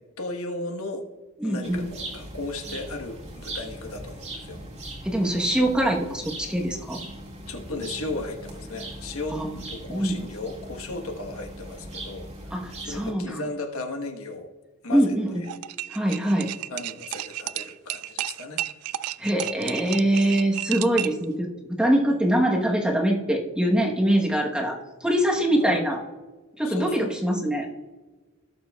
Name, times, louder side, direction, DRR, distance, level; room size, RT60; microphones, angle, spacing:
voice 1, 0.2-1.0 1.4-1.8 2.1-4.6 7.5-9.4 9.7-12.3 12.8-14.5 14.8-15.4 16.7-18.6 25.6-25.9 26.6-27.3, left 2 dB, 75° left, 4 dB, 1.2 m, -35 dB
voice 2, 1.4-1.8 5.0-7.0 9.3-9.6 9.9-10.2 12.5-13.4 14.9-15.3 15.9-16.5 19.2-26.0 26.6-27.7, right 1 dB, 5° right, 0 dB, 1.0 m, -23 dB
sound 1, 1.6-13.1, right 1 dB, 30° right, 1.9 m, -39 dB
Stir mug, 15.4-21.2, right 14 dB, 90° right, 0.4 m, -32 dB
17.5 x 6.9 x 2.3 m, 1.3 s
head